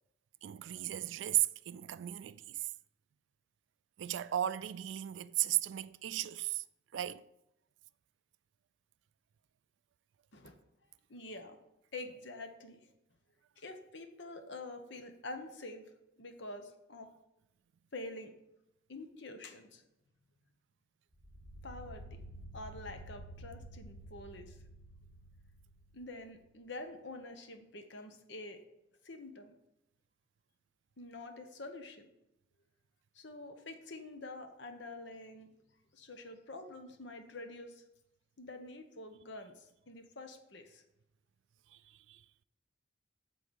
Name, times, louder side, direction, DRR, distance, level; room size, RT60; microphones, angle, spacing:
voice 1, 0.4-2.7 4.0-6.6 6.9-7.3 41.7-42.2, right 14 dB, 70° right, 0.3 m, -35 dB
voice 2, 11.1-11.6 11.9-12.8 13.6-15.8 16.2-17.1 17.9-18.3 18.9-19.8 21.6-22.0 22.5-24.5 25.9-28.6 29.0-29.5 31.0-32.1 33.1-35.5 35.9-37.8 38.4-40.8, left 2 dB, 65° left, 1.0 m, -47 dB
sound 1, 21.1-26.4, right 1 dB, 30° left, 3.1 m, -51 dB
8.3 x 3.9 x 6.9 m
head